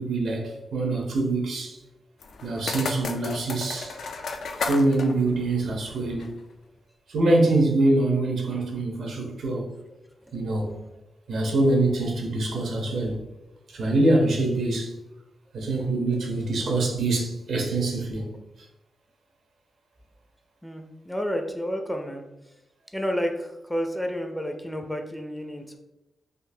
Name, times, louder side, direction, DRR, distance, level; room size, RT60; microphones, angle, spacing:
voice 1, 0.0-1.8 2.4-3.9 4.7-6.3 7.1-9.7 10.3-10.8 11.3-13.2 13.7-14.9 15.5-18.3, right 2 dB, 85° right, 0 dB, 0.8 m, -24 dB
sound 1, 2.2-6.4, left 4 dB, 80° left, 0.3 m, -34 dB
voice 2, 20.6-22.2 22.9-25.8, equal, 5° left, 4 dB, 0.4 m, -30 dB
3.8 x 2.4 x 2.7 m, 0.95 s
cardioid pair, 100°, 0 cm